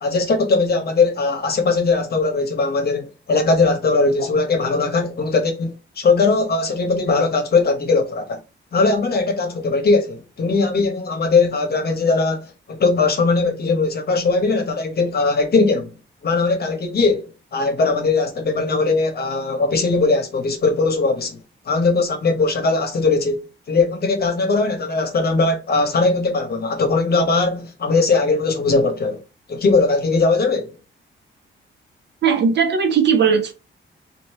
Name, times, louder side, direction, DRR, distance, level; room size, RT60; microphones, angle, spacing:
voice 1, 0.0-8.4 8.7-15.9 16.2-21.4 21.7-23.4 23.7-29.2 29.5-30.8, left 3 dB, 50° left, 1.0 m, -19 dB
voice 2, 32.2-33.5, right 6 dB, 60° right, 0.8 m, -17 dB
3.2 x 2.5 x 4.1 m
cardioid pair, 90°, 20 cm